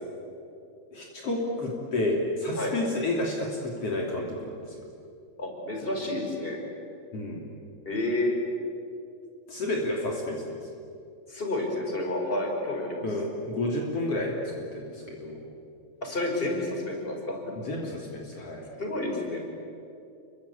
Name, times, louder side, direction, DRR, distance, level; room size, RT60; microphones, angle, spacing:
voice 1, 0.9-4.9 7.1-7.4 9.5-10.6 13.0-15.4 17.6-18.6, left 1 dB, 55° left, -1 dB, 4.0 m, -30 dB
voice 2, 5.4-6.6 7.8-8.3 11.3-13.1 16.0-17.4 18.8-19.4, left 1 dB, 15° left, 1 dB, 4.9 m, -30 dB
28.5 x 24.0 x 8.5 m, 2.6 s
omnidirectional pair, 3.3 m